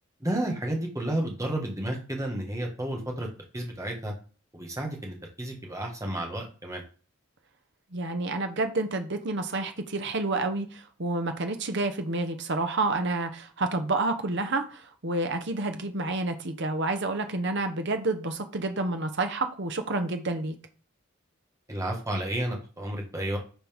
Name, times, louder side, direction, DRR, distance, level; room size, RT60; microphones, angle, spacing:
voice 1, 0.2-3.3 3.5-4.1 4.5-6.8 21.7-23.4, right 1 dB, 15° right, 1 dB, 1.6 m, -31 dB
voice 2, 7.9-20.5, right 2 dB, 60° right, 6 dB, 1.1 m, -29 dB
10.5 x 4.0 x 3.6 m, 0.38 s
head